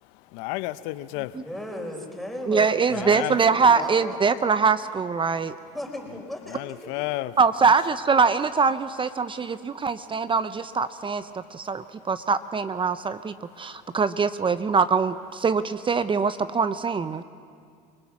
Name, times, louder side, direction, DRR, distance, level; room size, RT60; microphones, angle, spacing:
voice 1, 0.3-1.4 2.9-3.4 6.5-7.4 7.7-7.8, left 18 dB, 70° left, 15 dB, 0.8 m, -32 dB
voice 2, 1.3-4.4 5.7-6.9, left 1 dB, ahead, 1 dB, 4.7 m, -36 dB
voice 3, 2.5-5.5 7.4-17.2, right 5 dB, 25° right, 12 dB, 0.8 m, -23 dB
29.5 x 20.0 x 6.0 m, 2.2 s
hypercardioid pair, 80°, 19 cm